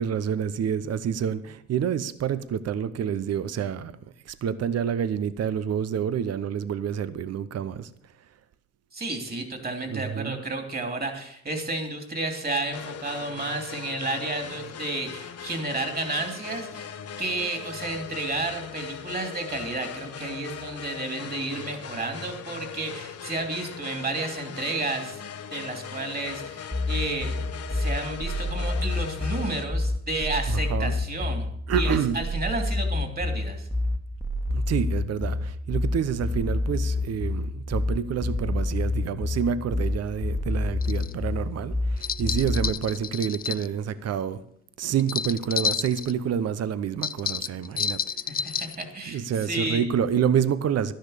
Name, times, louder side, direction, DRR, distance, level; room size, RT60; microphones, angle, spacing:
voice 1, 0.0-7.9 9.9-10.4 30.5-31.0 31.7-32.2 34.5-44.4 44.8-48.0 48.3-48.6 49.1-50.9, right 8 dB, 55° right, 0.8 m, -28 dB
voice 2, 8.9-16.9 17.2-25.2 25.5-27.3 27.7-31.5 31.7-33.7 48.3-49.9, right 2 dB, 30° right, 3.1 m, -31 dB
sound 1, 12.7-29.6, left 8 dB, 55° left, 1.1 m, -39 dB
sound 2, 26.7-42.7, left 2 dB, 10° right, 1.6 m, -27 dB
sound 3, 40.8-41.1 42.0-43.7 45.0-46.1 47.0-48.8, left 7 dB, 30° left, 0.4 m, -30 dB
12.0 x 10.5 x 6.6 m
cardioid pair, 90°, 30 cm